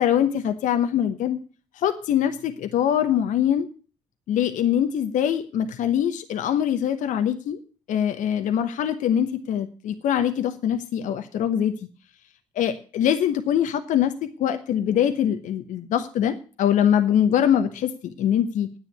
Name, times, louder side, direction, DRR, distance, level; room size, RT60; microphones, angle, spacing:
voice 1, 0.0-1.4 1.7-3.7 4.3-7.6 7.9-11.7 12.6-18.7, left 9 dB, 65° left, 8 dB, 1.0 m, -23 dB
9.9 x 7.6 x 9.1 m, 0.39 s
hypercardioid pair, 50°, 14 cm